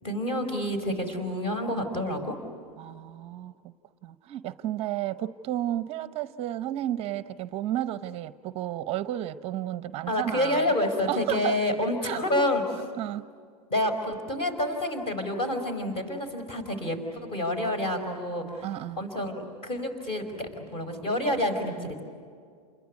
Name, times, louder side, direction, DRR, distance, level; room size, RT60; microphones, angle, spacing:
voice 1, 0.0-2.4 10.1-12.8 13.7-18.7 19.0-22.0, left 1 dB, 25° left, 7 dB, 5.0 m, -28 dB
voice 2, 2.8-3.7 4.0-10.7 11.1-11.6 12.0-12.2 13.0-13.3 18.6-19.1, right 13 dB, 30° right, 13 dB, 0.8 m, -32 dB
28.5 x 21.5 x 9.4 m, 2.1 s
supercardioid pair, 150°, 20 cm